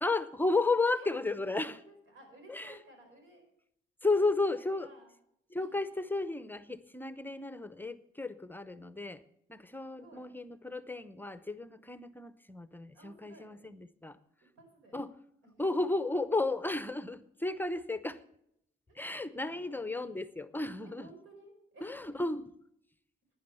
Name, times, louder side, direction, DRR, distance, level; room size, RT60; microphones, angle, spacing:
voice 1, 0.0-1.8 2.5-2.8 4.0-4.9 5.5-9.2 9.5-14.2 14.9-15.2 15.6-18.2 18.9-21.1 21.8-22.5, left 3 dB, 10° left, 13 dB, 0.7 m, -33 dB
voice 2, 1.6-3.4 4.5-5.1 5.6-5.7 9.9-10.3 12.9-13.7 14.6-15.0 18.9-19.6 20.8-21.9, right 2 dB, 85° right, 4 dB, 4.8 m, -56 dB
12.0 x 9.8 x 5.6 m, 0.74 s
cardioid pair, 90°, 20 cm